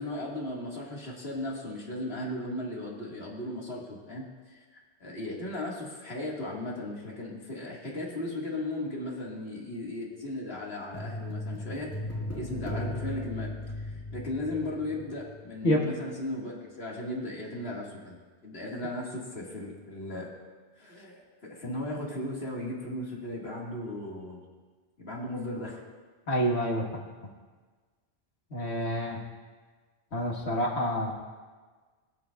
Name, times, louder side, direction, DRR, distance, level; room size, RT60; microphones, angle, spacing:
voice 1, 0.0-11.9 12.3-18.2 18.4-20.3 20.8-24.4 25.0-25.8, left 1 dB, 65° left, -3 dB, 2.4 m, -36 dB
sound 1, 10.9-15.4 15.6-15.8, left 1 dB, 15° left, 1.0 m, -37 dB
voice 2, 26.3-27.0 28.5-29.2 30.1-31.1, equal, 80° left, -2 dB, 2.0 m, -27 dB
23.0 x 8.0 x 2.5 m, 1.4 s
omnidirectional pair, 1.1 m